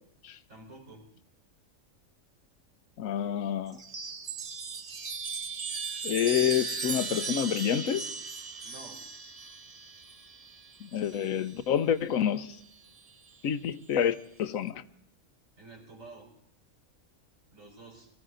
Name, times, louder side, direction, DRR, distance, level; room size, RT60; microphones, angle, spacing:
voice 1, 0.5-1.2 8.6-9.0 15.6-16.3 17.5-18.1, right 2 dB, 75° right, 4.9 m, -49 dB
voice 2, 3.0-3.8 6.0-8.1 10.8-12.6 13.4-14.8, left 9 dB, 90° left, 1.2 m, -28 dB
Chime, 3.7-11.5 12.7-13.4, right 4 dB, 35° right, 0.8 m, -37 dB
23.0 x 14.0 x 3.8 m
omnidirectional pair, 1.4 m